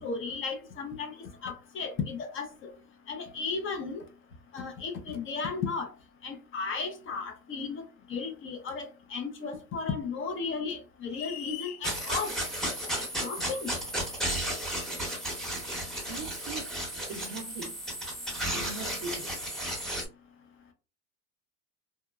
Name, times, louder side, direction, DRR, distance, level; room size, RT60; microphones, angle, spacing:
voice 1, 0.0-1.1 1.4-2.7 3.1-4.0 4.5-5.9 6.2-7.8 8.1-12.3 13.0-13.7, left 5 dB, 30° left, 0.6 m, -35 dB
sound 1, 11.1-11.8, left 10 dB, 80° left, 0.7 m, -40 dB
sound 2, 11.8-20.1, right 1 dB, ahead, 0.9 m, -34 dB
voice 2, 16.1-16.8 17.1-17.8 18.5-19.3, right 3 dB, 45° right, 0.5 m, -40 dB
2.9 x 2.1 x 2.3 m
supercardioid pair, 130°, 42 cm